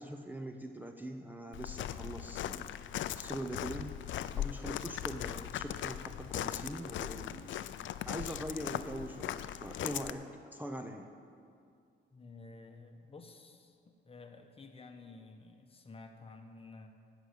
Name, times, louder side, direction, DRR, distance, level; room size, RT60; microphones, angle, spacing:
voice 1, 0.0-2.7 3.2-4.0 4.4-7.5 8.1-11.1, right 1 dB, 10° right, 4 dB, 0.7 m, -42 dB
Walk footsteps, 1.5-10.1, left 11 dB, 80° left, 0.5 m, -39 dB
voice 2, 12.1-16.9, left 3 dB, 30° left, 5 dB, 1.1 m, -52 dB
15.5 x 6.3 x 8.2 m, 2.3 s
cardioid pair, 125°, 19 cm